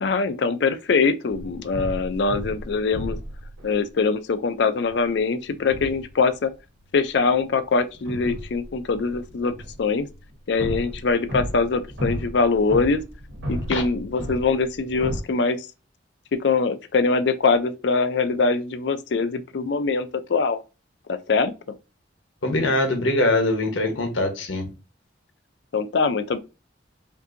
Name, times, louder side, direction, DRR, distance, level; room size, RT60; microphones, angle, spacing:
voice 1, 0.0-3.2 3.6-6.5 6.9-9.5 9.8-10.1 10.5-13.0 13.5-15.7 16.3-20.6 21.1-21.5 25.7-26.4, left 4 dB, 65° left, 0.4 m, -23 dB
sound 1, 1.3-3.7 4.8-5.0 5.5-6.3 7.0-15.2, equal, 80° right, 2.3 m, -34 dB
voice 2, 22.4-24.6, left 2 dB, 90° left, 1.1 m, -22 dB
5.3 x 2.6 x 2.5 m
head